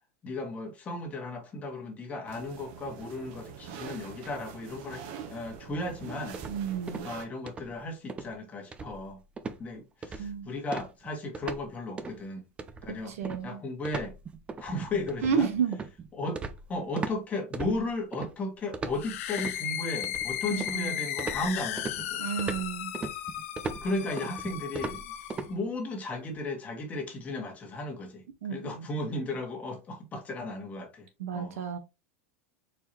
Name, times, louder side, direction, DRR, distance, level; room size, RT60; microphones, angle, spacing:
voice 1, 0.2-6.4 7.0-9.2 9.6-12.4 12.8-13.2 13.4-14.1 14.6-15.5 16.1-16.4 16.7-22.2 23.8-25.1 25.5-28.2 28.5-31.1 31.3-31.6, left 2 dB, 20° left, 1.4 m, -35 dB
sound 1, 2.3-7.3, right 7 dB, 50° right, 0.9 m, -44 dB
sound 2, 6.3-7.2 7.5-7.8 8.1-8.3 8.7-9.1 9.4-9.6 10.0-10.4 10.7-11.7 12.0-12.2 12.6-17.2 17.5-18.3 18.7-19.6 20.0-20.9 21.2-25.5, right 4 dB, 15° right, 0.4 m, -38 dB
voice 2, 6.5-7.1 10.2-10.5 13.1-13.6 15.2-15.8 20.5-21.0 22.2-22.9 28.4-29.1 31.2-31.8, right 7 dB, 85° right, 1.3 m, -31 dB
sound 3, 18.9-25.5, left 11 dB, 75° left, 0.7 m, -35 dB
4.4 x 3.7 x 2.9 m
supercardioid pair, 155°, 8 cm